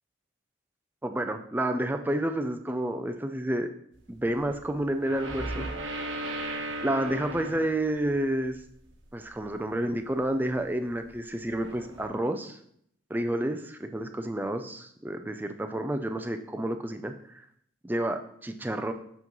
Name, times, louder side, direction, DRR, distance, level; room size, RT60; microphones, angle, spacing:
voice 1, 1.0-3.7 4.1-5.7 6.8-8.6 9.1-12.6 13.1-17.4 17.8-18.9, right 1 dB, 10° right, 7 dB, 0.4 m, -30 dB
sound 1, 3.9-4.0 4.3-4.6 5.0-9.0 9.3-9.4 9.7-9.8 10.0-10.1 10.5-10.6 11.0-11.2 11.5-12.1, right 1 dB, 85° right, 1.1 m, -36 dB
6.8 x 5.9 x 3.0 m, 0.67 s
head